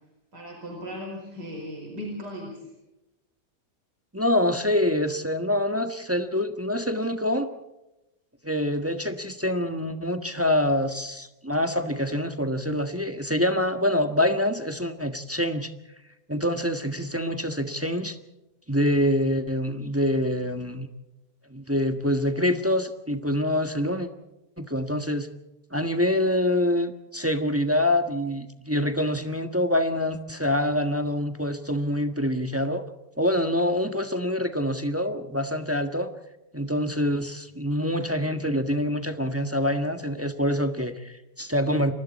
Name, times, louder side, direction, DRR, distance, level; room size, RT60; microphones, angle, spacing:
voice 1, 0.3-2.6, equal, 70° right, 1 dB, 5.6 m, -37 dB
voice 2, 4.1-7.5 8.4-15.7 16.3-18.2 18.7-20.9 21.5-24.1 24.6-25.3 25.7-32.8 33.2-36.1 36.5-41.9, left 1 dB, 10° right, 7 dB, 1.2 m, -25 dB
29.5 x 24.0 x 4.3 m, 0.97 s
omnidirectional pair, 1.8 m